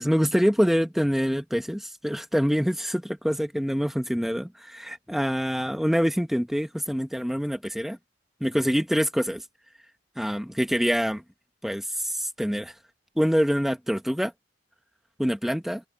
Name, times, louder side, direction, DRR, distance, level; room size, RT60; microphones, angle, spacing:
voice 1, 0.0-8.0 8.4-9.4 10.2-11.2 11.6-12.7 13.2-14.3 15.2-15.8, equal, ahead, 1.5 m, -25 dB
head